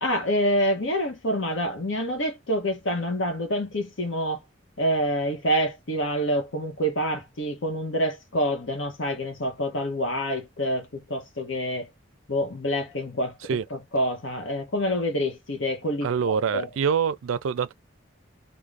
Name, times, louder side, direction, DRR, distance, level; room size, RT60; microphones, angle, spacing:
voice 1, 0.0-4.4 4.8-11.9 12.3-13.4 13.7-16.7, equal, 75° left, 0.9 m, -27 dB
voice 2, 16.0-17.7, right 7 dB, 85° right, 0.4 m, -25 dB
2.5 x 2.1 x 3.2 m
head